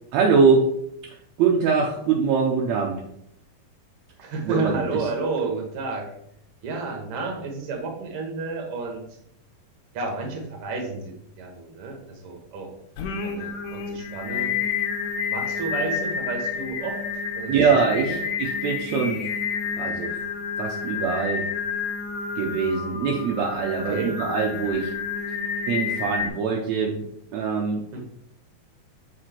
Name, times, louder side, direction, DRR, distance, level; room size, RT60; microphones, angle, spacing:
voice 1, 0.1-0.7 1.4-3.0 4.4-5.1 17.5-19.2 19.8-20.1 20.6-21.4 22.4-24.9 25.7-27.0 27.3-28.0, right 5 dB, 75° right, -1 dB, 1.6 m, -23 dB
voice 2, 4.2-6.1 6.6-9.0 9.9-12.7 13.1-14.5 15.3-17.0 17.3-17.6 17.9-18.2 23.9-24.2 27.9-28.0, right 3 dB, 55° right, 2 dB, 1.7 m, -31 dB
Singing, 13.0-26.3, left 5 dB, 80° left, 2.5 m, -29 dB
7.5 x 4.8 x 4.3 m, 0.75 s
omnidirectional pair, 4.0 m